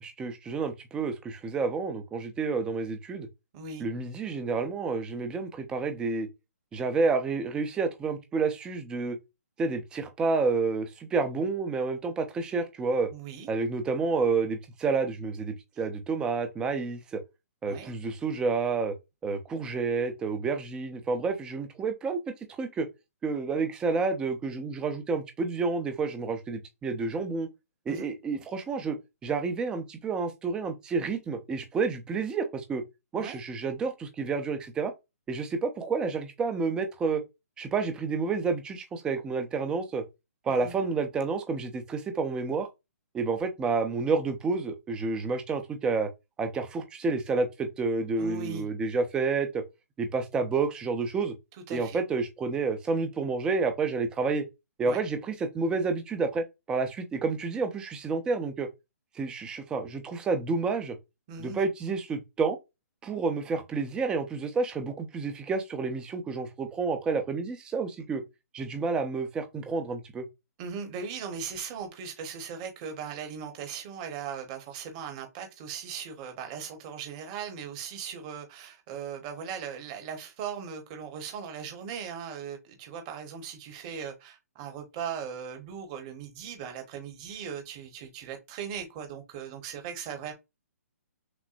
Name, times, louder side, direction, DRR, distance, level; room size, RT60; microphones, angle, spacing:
voice 1, 0.0-3.3 3.8-6.3 6.7-9.2 9.6-13.1 13.5-17.2 17.6-19.0 19.2-22.2 22.6-22.9 23.2-27.5 27.9-29.0 29.2-32.8 33.1-34.9 35.3-37.2 37.6-40.0 40.4-42.7 43.1-46.1 46.4-49.6 50.0-51.3 51.7-54.4 54.8-58.7 59.1-61.0 61.4-62.6 63.0-68.2 68.5-70.3, right 4 dB, 10° right, 0.6 m, -29 dB
voice 2, 3.5-3.9 13.1-13.5 17.7-17.9 27.9-28.1 33.2-33.4 40.5-40.8 48.2-48.7 51.7-52.0 54.8-55.0 61.3-61.6 70.6-90.3, right 7 dB, 25° right, 1.1 m, -38 dB
6.1 x 2.1 x 2.5 m
hypercardioid pair, 155°, 8 cm